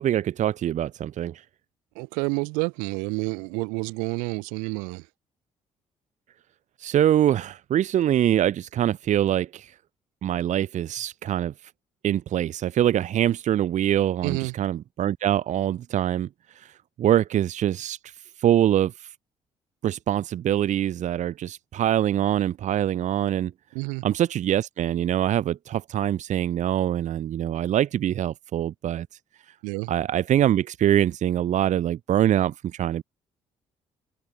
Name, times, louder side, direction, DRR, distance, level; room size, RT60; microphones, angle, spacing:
voice 1, 0.0-1.4 6.8-9.7 10.2-11.5 12.0-16.3 16.6-16.7 17.0-18.0 18.4-19.1 19.8-23.5 24.0-29.1 29.9-33.0, right 11 dB, 65° right, 3.7 m, -24 dB
voice 2, 2.0-5.0 14.2-14.5 23.7-24.0 29.6-29.9, right 31 dB, 85° right, 5.5 m, -29 dB
hypercardioid pair, 60°, 13 cm